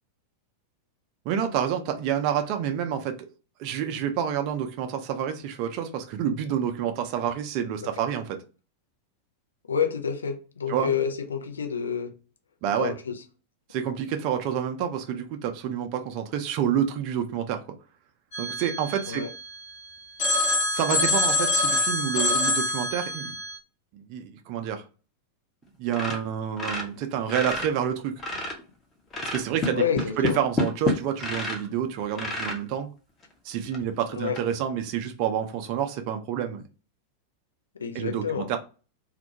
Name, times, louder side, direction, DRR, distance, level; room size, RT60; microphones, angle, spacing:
voice 1, 1.3-3.3 3.6-8.4 10.7-10.9 12.6-12.9 13.7-17.6 18.4-19.2 20.7-23.3 23.9-24.8 25.8-28.1 29.2-29.8 30.2-32.9 33.4-36.6 37.9-38.6, right 9 dB, 45° right, 0.4 m, -28 dB
voice 2, 9.7-12.1 12.8-13.2 19.1-19.3 29.8-30.4 34.1-34.4 37.8-38.5, left 7 dB, 70° left, 0.4 m, -28 dB
Telephone, 18.3-19.7 20.2-23.6, left 2 dB, 50° left, 0.9 m, -26 dB
sound 1, 25.9-27.7 28.0-28.7 29.1-31.7 32.1-32.6 33.2-33.3 33.7-33.8 34.3-34.4, left 2 dB, 25° left, 0.6 m, -29 dB
2.2 x 2.1 x 2.7 m
figure-of-eight pair, 90°, 0 cm